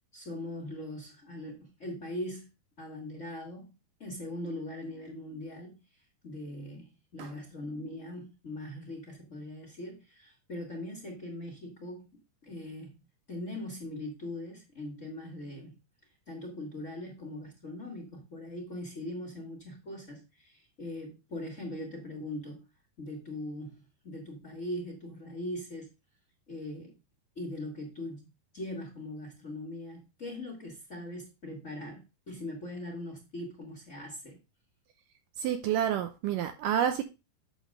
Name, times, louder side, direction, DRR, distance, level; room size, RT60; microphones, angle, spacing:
voice 1, 0.1-2.5 2.8-3.7 4.0-5.8 6.2-13.0 13.3-15.8 16.3-22.7 23.0-25.9 26.5-27.0 27.3-28.3 28.5-34.4, left 1 dB, 75° left, 0.6 m, -41 dB
voice 2, 35.4-37.0, right 9 dB, 75° right, 2.0 m, -29 dB
9.0 x 3.4 x 6.4 m
omnidirectional pair, 4.4 m